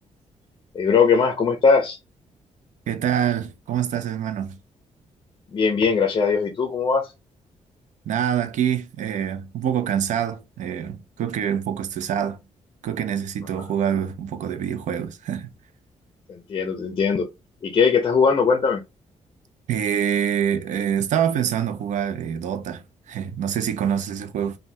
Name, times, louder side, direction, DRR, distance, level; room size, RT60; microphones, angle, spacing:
voice 1, 0.7-2.0 5.5-7.1 16.3-17.3 17.6-18.8, left 5 dB, 35° left, 0.5 m, -20 dB
voice 2, 2.9-4.6 8.1-12.4 12.8-15.5 19.7-24.6, right 9 dB, 75° right, 0.5 m, -25 dB
3.3 x 2.1 x 2.7 m
wide cardioid pair, 175°, 13 cm